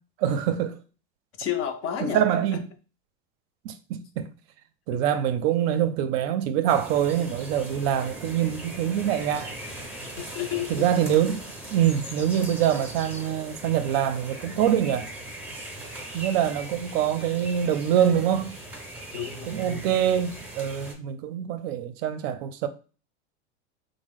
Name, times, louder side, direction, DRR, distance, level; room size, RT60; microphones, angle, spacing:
voice 1, 0.2-0.7 2.0-2.6 3.6-4.3 4.9-9.5 10.7-11.4 11.7-15.1 16.1-18.6 19.5-22.7, right 10 dB, 60° right, 0.5 m, -25 dB
voice 2, 1.4-2.3 2.5-2.6 4.9-5.0 10.2-10.9 15.8-16.2 19.1-19.9, left 9 dB, 40° left, 0.5 m, -32 dB
sound 1, 6.7-20.9, right 1 dB, 5° right, 0.6 m, -40 dB
2.9 x 2.0 x 3.5 m
supercardioid pair, 125°, 35 cm